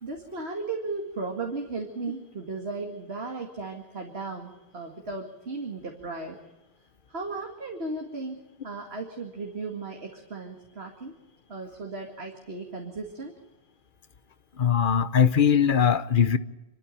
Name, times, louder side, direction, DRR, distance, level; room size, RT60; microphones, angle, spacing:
voice 1, 0.0-6.4 7.1-8.4 8.6-11.2 11.5-13.3, right 3 dB, 90° right, 2.4 m, -36 dB
voice 2, 14.6-16.4, left 8 dB, 55° left, 1.1 m, -21 dB
27.0 x 13.5 x 9.0 m
omnidirectional pair, 1.0 m